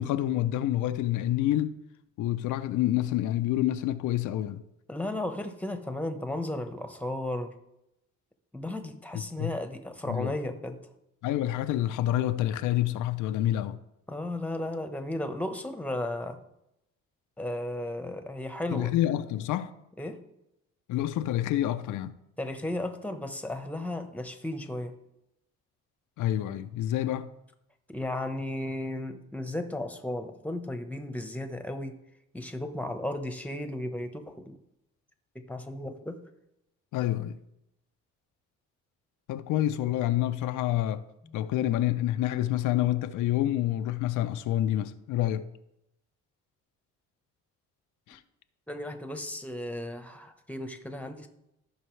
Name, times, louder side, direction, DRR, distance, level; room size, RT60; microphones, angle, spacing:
voice 1, 0.0-1.8 2.2-4.6 9.1-9.5 10.1-10.3 11.2-13.8 18.7-19.7 20.9-22.2 26.2-27.3 36.9-37.4 39.3-41.1 41.3-45.5 48.1-48.2, left 13 dB, 85° left, 0.6 m, -28 dB
voice 2, 4.9-7.5 8.5-10.8 14.1-16.4 17.4-18.9 20.0-20.2 22.4-24.9 27.9-32.0 32.3-34.6 35.3-36.2 41.2-41.4 48.7-51.3, left 1 dB, 5° left, 1.0 m, -34 dB
14.0 x 5.5 x 3.2 m
cardioid pair, 90°, 30 cm